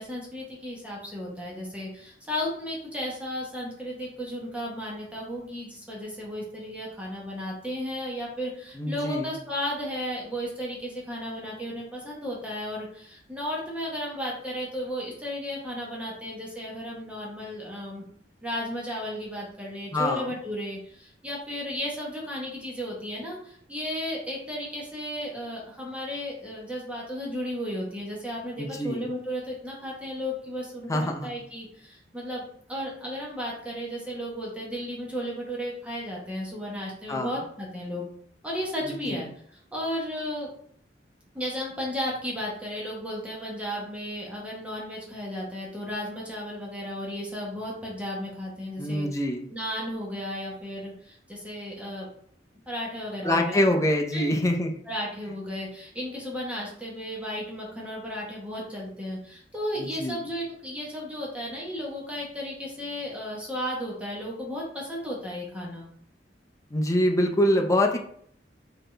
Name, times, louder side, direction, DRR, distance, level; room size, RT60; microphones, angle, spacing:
voice 1, 0.0-18.1 18.4-32.4 32.7-38.1 38.4-39.3 39.7-40.5 41.3-49.1 49.5-52.1 52.7-53.7 54.1-54.5 54.8-65.9, equal, 5° right, -4 dB, 1.0 m, -34 dB
voice 2, 8.8-9.3 19.9-20.3 28.6-29.0 30.9-31.3 37.1-37.3 38.8-39.2 48.8-49.5 53.2-54.7 59.8-60.2 66.7-68.0, left 1 dB, 20° left, 2 dB, 0.6 m, -25 dB
4.1 x 3.9 x 3.3 m, 0.64 s
head